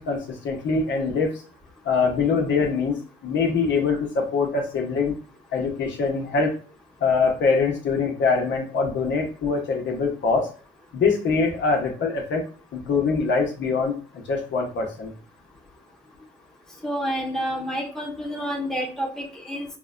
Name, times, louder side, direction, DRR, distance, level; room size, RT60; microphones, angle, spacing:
voice 1, 0.0-1.4 1.8-3.0 3.2-5.1 5.5-6.6 7.0-10.5 10.9-12.5 12.7-15.1, left 4 dB, 65° left, 1 dB, 0.9 m, -23 dB
voice 2, 16.8-19.7, equal, ahead, -2 dB, 1.0 m, -29 dB
5.2 x 2.1 x 2.5 m, 0.39 s
cardioid pair, 90°, 20 cm